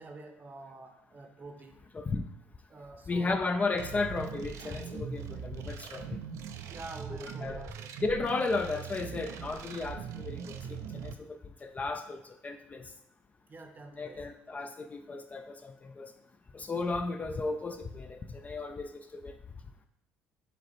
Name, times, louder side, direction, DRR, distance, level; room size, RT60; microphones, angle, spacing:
voice 1, 0.0-1.9 2.7-3.4 6.7-7.9 13.5-14.3, right 3 dB, 35° right, 5 dB, 0.7 m, -47 dB
voice 2, 1.9-2.2 3.1-6.2 7.2-7.7 8.0-12.9 14.0-16.1 16.5-19.3, left 3 dB, 25° left, 8 dB, 0.3 m, -34 dB
sound 1, 3.8-11.1, right 7 dB, 65° right, 0.4 m, -41 dB
4.9 x 3.0 x 3.0 m, 0.80 s
hypercardioid pair, 65°, 5 cm